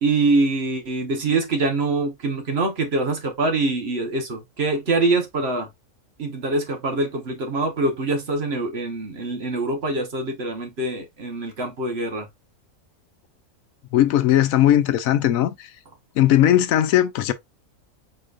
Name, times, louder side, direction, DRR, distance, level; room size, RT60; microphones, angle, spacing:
voice 1, 0.0-5.7 6.2-12.3, right 2 dB, 50° right, 1.3 m, -24 dB
voice 2, 13.9-15.7 16.2-17.3, left 12 dB, 75° left, 1.0 m, -18 dB
4.9 x 4.4 x 2.4 m
omnidirectional pair, 1.5 m